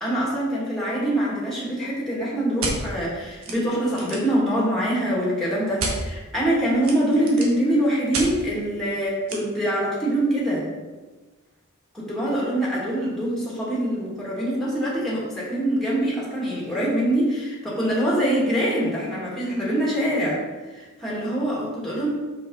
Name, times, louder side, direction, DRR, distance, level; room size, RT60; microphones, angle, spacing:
voice 1, 0.0-10.7 11.9-20.4 20.7-22.1, right 1 dB, ahead, -6 dB, 2.2 m, -24 dB
sound 1, 2.6-2.8 3.4-3.5 3.9-4.3 5.8-6.0 6.8-7.6 8.1-8.3 9.3-9.4, right 3 dB, 75° right, 1.3 m, -28 dB
6.1 x 5.6 x 4.0 m, 1.3 s
head